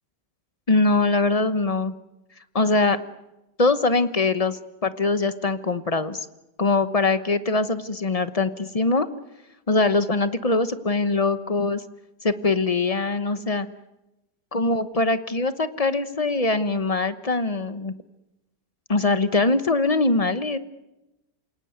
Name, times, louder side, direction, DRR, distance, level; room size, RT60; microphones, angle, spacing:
voice 1, 0.7-1.9 2.5-3.0 3.6-6.3 6.6-9.1 9.7-11.8 12.2-13.7 14.5-17.9 18.9-20.6, left 3 dB, 30° left, 12 dB, 0.8 m, -22 dB
28.0 x 18.0 x 9.6 m, 0.97 s
omnidirectional pair, 1.8 m